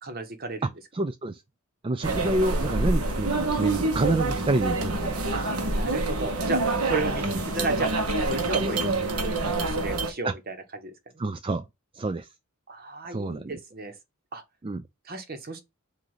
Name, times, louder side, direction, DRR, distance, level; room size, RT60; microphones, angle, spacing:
voice 1, 0.0-0.7 5.3-8.9 9.2-11.2 12.7-13.9 14.3-14.4 15.0-15.6, right 3 dB, 45° right, 1.3 m, -33 dB
voice 2, 0.9-1.4 1.8-5.2 10.2-10.3 11.2-11.7 11.9-12.3 13.1-13.5 14.6-14.8, right 2 dB, 25° right, 0.4 m, -28 dB
sound 1, 2.0-10.1, right 2 dB, 85° right, 1.3 m, -27 dB
7.8 x 2.8 x 5.6 m
head